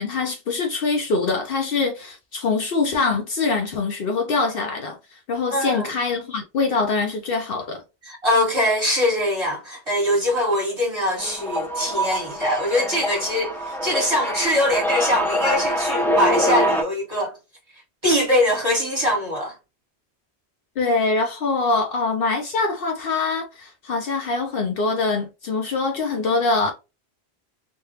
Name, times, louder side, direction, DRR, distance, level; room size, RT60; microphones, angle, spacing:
voice 1, 0.0-7.8 20.8-26.7, left 3 dB, 65° left, 0.8 m, -24 dB
voice 2, 5.5-5.9 8.0-17.4 18.0-19.5, left 1 dB, 25° right, 1.4 m, -22 dB
sound 1, 11.2-16.8, equal, 5° left, 0.3 m, -24 dB
3.5 x 2.2 x 2.8 m
omnidirectional pair, 1.1 m